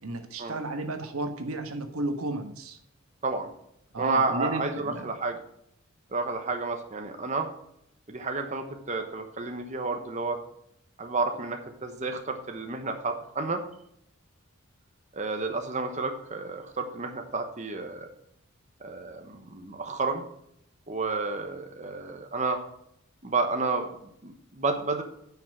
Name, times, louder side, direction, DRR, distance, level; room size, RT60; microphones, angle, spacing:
voice 1, 0.0-2.8 3.9-5.1, right 2 dB, 90° right, 6 dB, 1.3 m, -33 dB
voice 2, 4.0-5.4 6.1-7.5 8.1-10.4 11.0-13.6 15.1-18.1 18.8-20.2 20.9-22.6 23.2-23.9 24.2-25.0, right 3 dB, 35° right, 5 dB, 1.0 m, -31 dB
9.5 x 5.8 x 6.1 m, 0.73 s
head